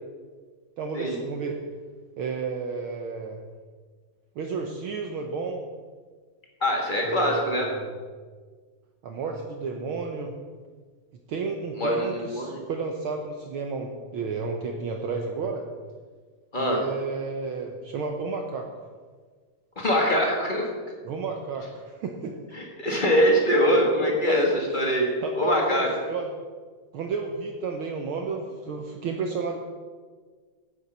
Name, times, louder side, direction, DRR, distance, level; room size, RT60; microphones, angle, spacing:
voice 1, 0.8-1.6 2.2-3.4 4.3-5.6 7.0-7.9 9.0-10.4 11.3-15.6 16.6-18.9 21.0-22.3 23.8-23.9 24.2-24.4 25.2-26.3 26.9-29.6, right 4 dB, 85° right, 3 dB, 1.1 m, -32 dB
voice 2, 6.6-7.7 11.8-12.6 16.5-16.8 19.7-20.7 22.5-24.5 24.7-25.1 25.3-25.9, equal, 25° left, -1 dB, 1.1 m, -23 dB
10.5 x 8.3 x 5.4 m, 1.5 s
omnidirectional pair, 3.5 m